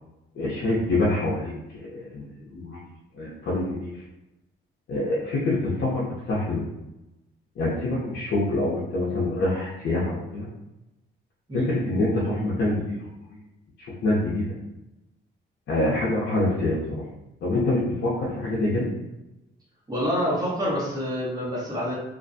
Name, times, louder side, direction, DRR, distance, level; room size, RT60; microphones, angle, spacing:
voice 1, 0.4-1.5 1.8-2.2 2.5-2.8 3.1-3.9 4.9-6.7 7.6-10.5 11.5-13.4 14.0-14.6 15.7-17.0 17.4-18.9, left 2 dB, 70° left, -7 dB, 0.7 m, -25 dB
voice 2, 19.9-22.0, equal, 20° right, -7 dB, 1.1 m, -27 dB
2.5 x 2.2 x 2.6 m, 0.95 s
cardioid pair, 90°, 20 cm